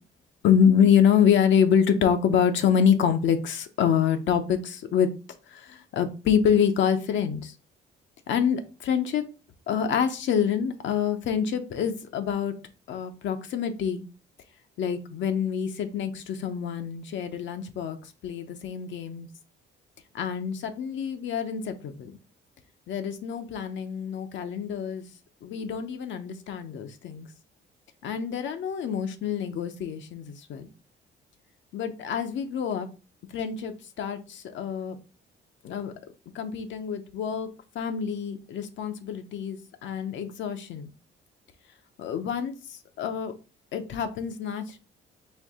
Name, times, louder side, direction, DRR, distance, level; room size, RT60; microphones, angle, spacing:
voice 1, 0.4-5.1 5.5-7.5 8.3-9.3 9.7-12.5 12.9-14.0 14.8-18.0 18.2-19.3 20.1-22.2 22.9-25.1 25.4-27.3 28.0-30.7 31.7-32.9 33.3-35.0 35.6-35.9 36.3-37.5 37.7-40.9 42.0-43.3 43.7-44.8, left 8 dB, 70° left, 7 dB, 0.7 m, -26 dB
4.5 x 2.6 x 3.6 m, 0.34 s
cardioid pair, 90°, 20 cm